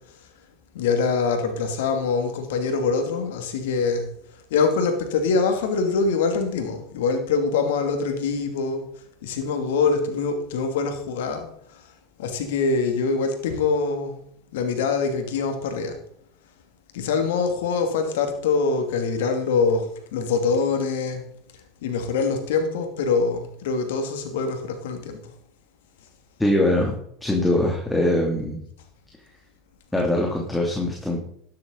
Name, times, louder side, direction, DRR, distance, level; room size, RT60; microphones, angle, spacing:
voice 1, 0.7-4.1 4.5-8.9 9.2-11.8 12.2-14.3 14.5-16.0 16.9-21.2 21.8-25.3, left 4 dB, 75° left, 2.6 m, -24 dB
voice 2, 26.4-26.9 27.2-28.6 29.9-31.2, left 1 dB, 10° left, 2.8 m, -22 dB
13.0 x 10.5 x 4.0 m
hypercardioid pair, 85°, 0 cm